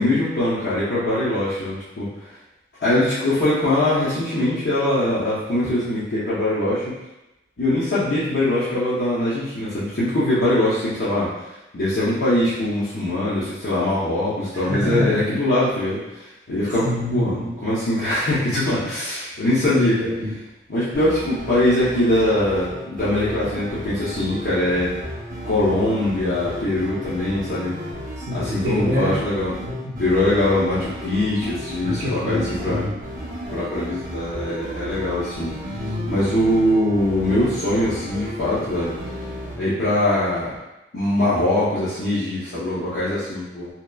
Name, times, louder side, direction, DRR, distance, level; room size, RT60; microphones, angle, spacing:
voice 1, 0.0-2.1 2.8-6.9 7.6-11.3 11.7-16.0 16.5-16.9 17.1-19.9 20.7-25.0 25.4-27.7 28.3-29.6 30.0-32.8 33.5-35.5 36.1-38.9 39.6-40.6 40.9-43.7, left 1 dB, 60° left, -12 dB, 0.6 m, -22 dB
voice 2, 14.5-15.2 16.8-17.6 19.7-20.3 28.3-29.2 29.6-30.0 31.8-32.9 35.7-36.2, left 1 dB, 75° right, -8 dB, 0.6 m, -26 dB
sound 1, 20.9-39.6, equal, 45° right, 0.8 m, -34 dB
2.8 x 2.1 x 2.2 m, 0.97 s
head